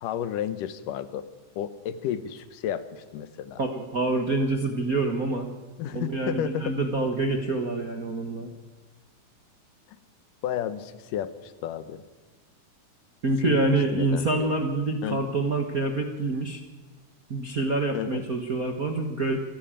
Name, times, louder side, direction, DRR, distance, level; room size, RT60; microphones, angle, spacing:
voice 1, 0.0-1.3 1.6-3.6 5.8-6.8 10.4-12.0 13.4-14.5 15.0-15.2 17.9-18.2, left 10 dB, 85° left, 14 dB, 2.6 m, -32 dB
voice 2, 3.6-5.5 5.9-8.5 13.2-16.6 17.3-19.4, right 2 dB, 40° right, 3 dB, 1.3 m, -26 dB
25.5 x 12.0 x 8.9 m, 1.3 s
omnidirectional pair, 3.7 m